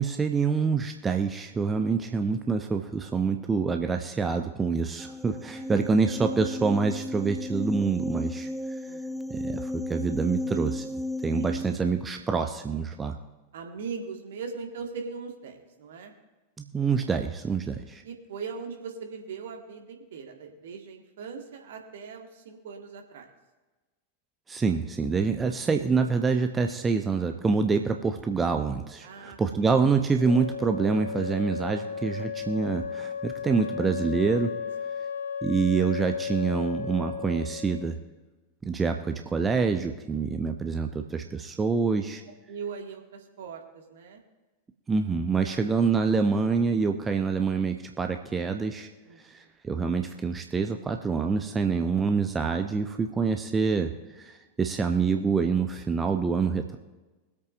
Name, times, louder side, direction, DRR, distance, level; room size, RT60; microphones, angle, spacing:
voice 1, 0.0-8.5 9.3-10.9 11.2-13.2 16.6-18.0 24.5-34.5 35.4-38.0 38.6-42.2 44.9-48.9 49.3-56.8, right 5 dB, 15° right, 5 dB, 0.7 m, -26 dB
sound 1, 5.0-11.8, left 1 dB, ahead, 0.3 m, -34 dB
voice 2, 5.3-5.7 8.9-9.3 11.3-11.5 13.5-16.1 18.0-23.3 29.0-29.7 42.5-44.2 45.5-45.7 49.1-49.5, right 5 dB, 60° right, 3 dB, 1.7 m, -40 dB
Wind instrument woodwind instrument, 30.2-37.9, left 6 dB, 60° left, 1.0 m, -34 dB
23.0 x 8.4 x 2.6 m, 1.2 s
figure-of-eight pair, 90°, 0 cm